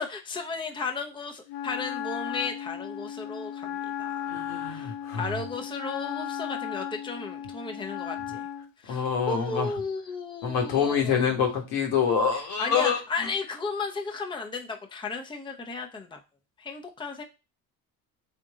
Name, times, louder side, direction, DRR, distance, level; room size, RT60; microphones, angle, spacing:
voice 1, 0.0-4.9 5.2-8.5 8.8-11.3 12.3-16.2 16.6-17.2, left 4 dB, 10° left, 3 dB, 0.7 m, -34 dB
Wind instrument woodwind instrument, 1.5-8.7, left 9 dB, 55° left, 0.6 m, -35 dB
voice 2, 4.3-5.4 8.9-9.7 10.4-13.0, left 7 dB, 75° left, 1 dB, 1.3 m, -26 dB
3.9 x 2.6 x 3.6 m, 0.28 s
hypercardioid pair, 60°, 42 cm